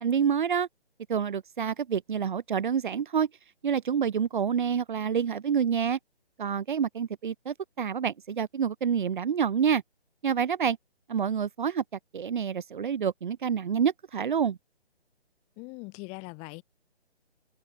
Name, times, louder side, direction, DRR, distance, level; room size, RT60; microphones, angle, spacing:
voice 1, 0.0-0.7 1.1-3.3 3.6-6.0 6.4-9.8 10.2-10.8 11.1-11.8 12.1-14.6, right 7 dB, 45° right, 2.5 m, -27 dB
voice 2, 15.6-16.6, left 30 dB, 20° left, 7.9 m, -41 dB
hypercardioid pair, 155°, 33 cm